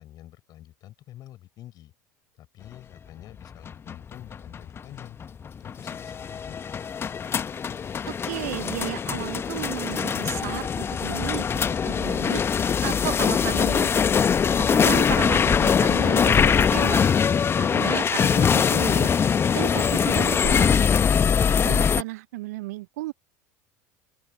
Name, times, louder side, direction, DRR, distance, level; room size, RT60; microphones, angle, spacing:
voice 1, 0.0-1.9 2.3-5.2 5.6-6.6 21.2-21.6, left 13 dB, 45° left, 5.7 m, -46 dB
sound 1, 3.4-22.0, left 7 dB, 25° left, 1.2 m, -22 dB
voice 2, 8.1-11.4 11.8-12.4 12.8-13.9 14.6-17.0 17.6-19.1 19.5-20.9 21.6-23.1, right 18 dB, 65° right, 1.0 m, -34 dB
open air
figure-of-eight pair, 75°, 9 cm